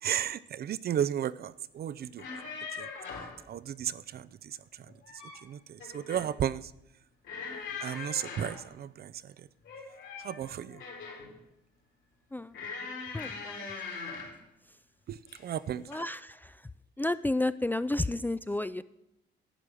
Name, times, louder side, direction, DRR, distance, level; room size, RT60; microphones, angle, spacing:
voice 1, 0.0-2.3 2.7-2.9 3.5-4.9 5.4-6.7 7.8-9.5 10.2-10.8 15.1-15.9, right 10 dB, 50° right, 0.5 m, -34 dB
sound 1, 2.0-3.4 4.8-5.4 5.8-6.3 7.2-8.7 9.6-11.3 12.5-14.4 15.3-15.6 15.9-16.1, left 4 dB, 75° left, 3.6 m, -41 dB
voice 2, 13.1-13.6 15.9-16.2 17.0-18.8, left 2 dB, 10° left, 0.3 m, -31 dB
11.0 x 8.3 x 6.2 m
cardioid pair, 90°, 20 cm